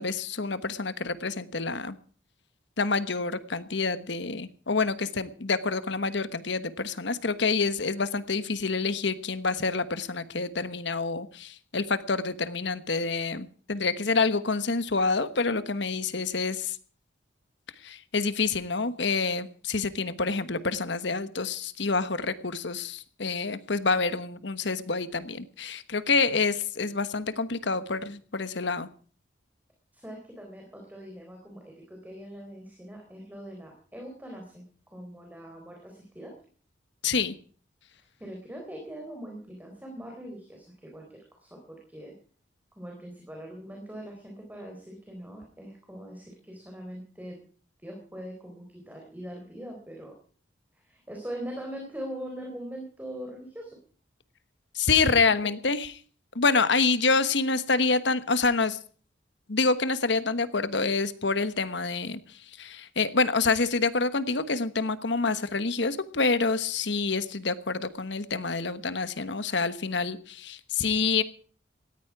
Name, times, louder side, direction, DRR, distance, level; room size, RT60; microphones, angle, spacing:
voice 1, 0.0-2.0 2.8-16.8 17.8-28.9 37.0-37.3 54.7-55.9 56.3-58.8 59.5-71.2, left 4 dB, 70° left, 13 dB, 1.2 m, -27 dB
voice 2, 29.9-34.6 34.9-36.3 38.2-42.1 42.8-47.4 47.8-50.1 50.7-53.8 55.4-55.5, equal, 10° right, 0 dB, 4.1 m, -42 dB
18.0 x 14.5 x 4.8 m, 0.43 s
head